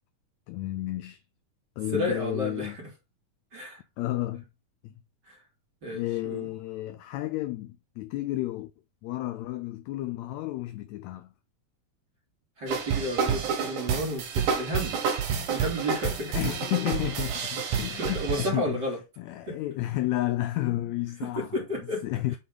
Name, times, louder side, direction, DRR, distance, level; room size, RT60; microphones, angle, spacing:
voice 1, 0.5-1.2 1.8-2.8 4.0-4.4 4.8-4.9 5.9-8.7 9.0-11.3 15.4-15.5 16.3-18.8 19.2-21.5 22.0-22.4, left 16 dB, 80° left, 1.6 m, -31 dB
voice 2, 1.9-2.9 3.5-3.8 5.3-5.4 5.8-6.5 12.6-15.0 15.5-16.5 17.6-19.0 19.5-19.6 21.4-22.0, left 1 dB, 35° right, 3.5 m, -32 dB
sound 1, 12.7-18.5, right 7 dB, 80° right, 3.1 m, -29 dB
7.7 x 4.2 x 5.3 m
omnidirectional pair, 3.6 m